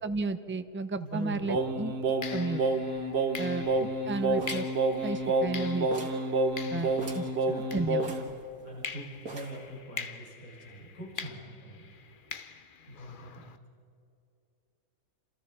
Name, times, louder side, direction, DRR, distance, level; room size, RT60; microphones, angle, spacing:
voice 1, 0.0-1.9 2.3-2.6 3.4-4.7 5.0-6.1 6.7-7.2 7.7-8.0, right 3 dB, 15° right, 9 dB, 0.5 m, -33 dB
voice 2, 0.9-1.6 6.6-8.1 8.6-11.9 12.9-13.5, right 1 dB, 80° left, -4 dB, 6.8 m, -43 dB
sound 1, 1.1-1.3 2.2-8.4 8.8-13.6, left 6 dB, 45° left, 0.9 m, -44 dB
Singing, 1.5-8.3, right 2 dB, 45° right, 1.3 m, -29 dB
sound 2, 4.4-5.6 5.9-6.3 6.6-6.7 6.9-7.4 8.0-8.8 9.3-9.7, right 2 dB, 85° right, 2.6 m, -41 dB
29.0 x 27.5 x 4.9 m, 2.5 s
omnidirectional pair, 1.5 m